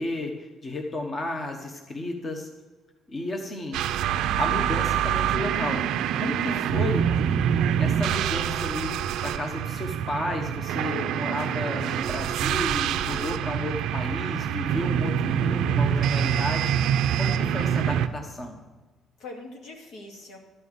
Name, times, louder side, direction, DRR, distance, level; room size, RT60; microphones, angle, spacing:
voice 1, 0.0-2.5 3.1-3.8 4.4-5.8 6.2-7.0 7.8-18.6, left 2 dB, 25° left, 3 dB, 0.9 m, -33 dB
sound 1, 3.7-18.1, right 9 dB, 75° right, 0.5 m, -25 dB
voice 2, 6.4-7.1 12.8-13.3 14.7-15.1 19.2-20.4, left 2 dB, 75° left, 1 dB, 2.3 m, -44 dB
12.0 x 5.6 x 8.0 m, 1.3 s
cardioid pair, 170°, 0 cm